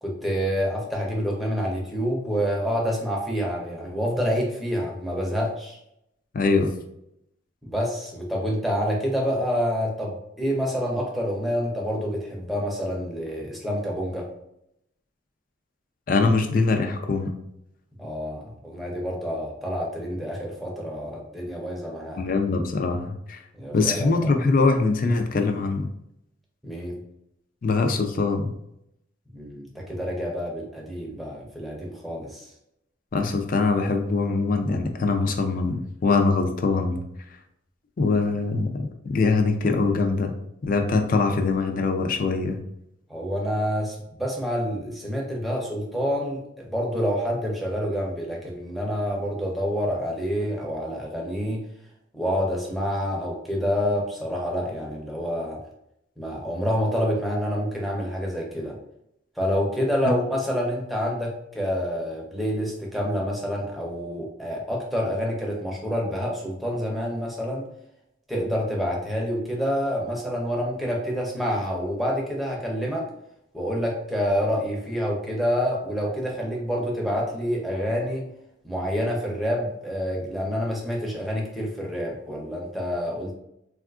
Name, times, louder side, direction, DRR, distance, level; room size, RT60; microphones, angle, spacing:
voice 1, 0.0-5.8 7.6-14.3 18.0-22.2 23.5-24.3 26.6-27.0 29.3-32.5 43.1-51.6 52.1-55.6 56.2-58.8 59.4-67.7 68.3-73.1 73.5-78.2 78.6-83.3, equal, ahead, -2 dB, 0.6 m, -27 dB
voice 2, 6.3-6.7 16.1-17.3 22.2-23.4 23.7-25.9 27.6-28.5 33.1-37.0 38.0-40.3 40.6-42.6, left 3 dB, 45° left, 5 dB, 0.4 m, -23 dB
3.5 x 2.4 x 2.3 m, 0.79 s
head